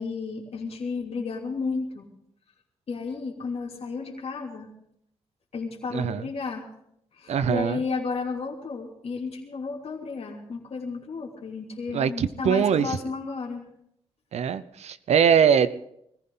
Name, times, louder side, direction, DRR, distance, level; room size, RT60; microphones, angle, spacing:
voice 1, 0.0-2.1 2.9-4.7 5.5-6.7 7.1-13.7, left 4 dB, 65° left, -1 dB, 3.0 m, -33 dB
voice 2, 5.9-6.2 7.3-7.8 11.9-13.0 14.3-15.7, right 7 dB, 80° right, 14 dB, 0.7 m, -22 dB
21.0 x 15.0 x 3.9 m, 0.74 s
cardioid pair, 80°, 11 cm